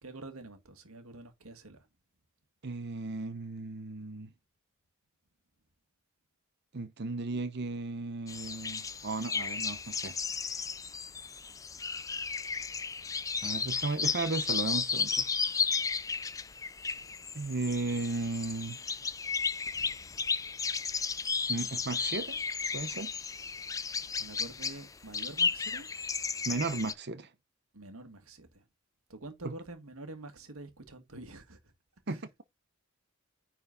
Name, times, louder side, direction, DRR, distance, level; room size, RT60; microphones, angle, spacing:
voice 1, 0.0-1.9 24.2-25.9 27.7-28.6 29.1-31.6 32.1-32.2, right 2 dB, 80° right, 2.0 m, -47 dB
voice 2, 2.6-4.3 6.7-10.2 13.4-15.3 17.3-18.8 21.5-22.4 22.7-23.1 26.5-27.3 29.4-29.5 32.1-32.3, right 3 dB, 50° right, 0.8 m, -35 dB
sound 1, 8.3-26.9, left 5 dB, 15° left, 0.4 m, -34 dB
9.7 x 4.6 x 3.9 m
head